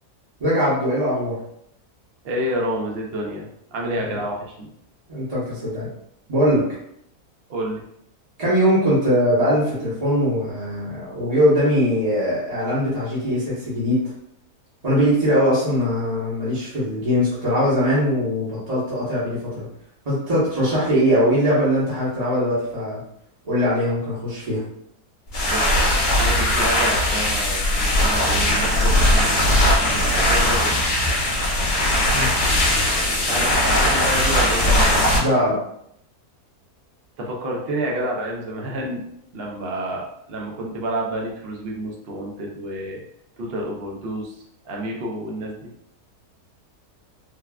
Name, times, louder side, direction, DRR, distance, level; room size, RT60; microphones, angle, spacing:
voice 1, 0.4-1.4 4.0-4.1 5.1-5.9 6.3-6.6 8.4-14.0 14.8-19.6 20.0-23.0 23.4-24.6 32.1-32.3 35.2-35.6, equal, 30° right, -9 dB, 0.9 m, -21 dB
voice 2, 2.2-4.7 7.5-7.8 25.5-25.9 26.2-29.3 29.6-29.8 30.1-30.7 33.2-34.9 37.2-39.0 39.3-43.0 43.4-44.3 44.6-45.7, right 1 dB, 60° right, -1 dB, 0.6 m, -29 dB
sound 1, 25.3-35.2, left 1 dB, 50° left, 0.9 m, -19 dB
3.3 x 2.2 x 2.3 m, 0.72 s
omnidirectional pair, 1.6 m